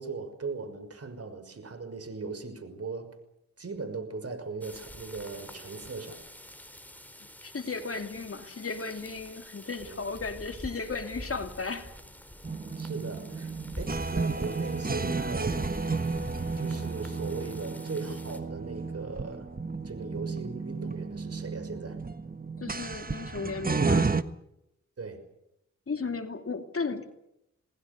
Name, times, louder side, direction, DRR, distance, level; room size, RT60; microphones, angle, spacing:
voice 1, 0.0-3.2 3.6-6.2 9.8-10.0 12.8-15.7 16.5-19.5 19.8-22.0 25.0-25.2, right 4 dB, 55° right, 9 dB, 5.9 m, -38 dB
sound 1, 4.6-18.4, equal, 5° left, 4.5 m, -46 dB
voice 2, 7.4-12.0 22.6-24.1 25.9-27.1, left 4 dB, 50° left, 6 dB, 2.8 m, -35 dB
sound 2, 12.4-24.2, right 4 dB, 30° right, 1.5 m, -32 dB
27.5 x 19.5 x 6.9 m, 0.83 s
cardioid pair, 65°, 29 cm